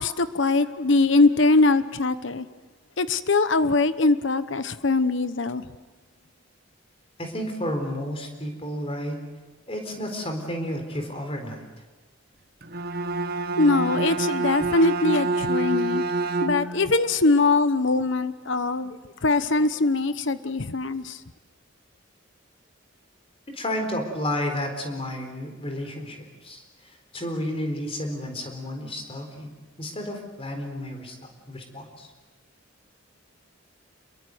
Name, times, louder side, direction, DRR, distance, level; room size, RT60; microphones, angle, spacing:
voice 1, 0.0-2.5 3.0-5.6 13.6-16.0 16.4-19.0 19.2-21.2, left 3 dB, 65° left, 13 dB, 1.0 m, -22 dB
voice 2, 7.2-9.2 9.7-11.6 23.5-26.6 27.1-29.5 29.8-31.1 31.5-32.1, left 1 dB, 30° left, 4 dB, 4.1 m, -31 dB
Bowed string instrument, 12.6-16.9, right 2 dB, 50° right, 1.4 m, -27 dB
28.0 x 22.5 x 7.9 m, 1.2 s
head